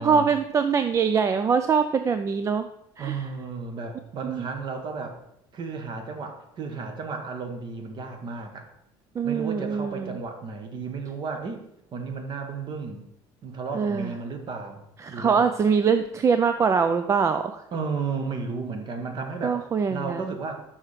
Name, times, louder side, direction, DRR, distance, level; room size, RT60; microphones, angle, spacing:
voice 1, 0.0-2.7 3.0-3.3 4.2-4.5 9.2-10.2 13.7-14.1 15.0-17.6 19.4-20.2, right 6 dB, 25° right, 9 dB, 0.4 m, -23 dB
voice 2, 3.0-5.2 5.5-8.7 9.2-13.0 13.4-14.8 15.1-15.4 17.7-19.6 19.9-20.6, right 4 dB, 45° right, 6 dB, 1.3 m, -33 dB
6.2 x 5.8 x 4.9 m, 0.78 s
cardioid pair, 120°, 11 cm